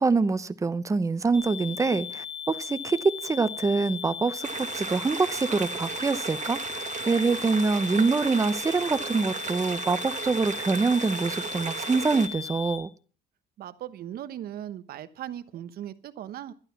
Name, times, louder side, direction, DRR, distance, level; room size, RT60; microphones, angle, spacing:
voice 1, 0.0-6.8 7.1-12.9, right 4 dB, 20° right, 0.8 m, -25 dB
sound 1, 1.3-12.8, left 8 dB, 60° left, 5.0 m, -37 dB
sound 2, 4.4-12.3, right 8 dB, 45° right, 1.4 m, -35 dB
voice 2, 13.6-16.5, right 11 dB, 65° right, 1.1 m, -38 dB
12.0 x 11.5 x 5.9 m
cardioid pair, 110°, 17 cm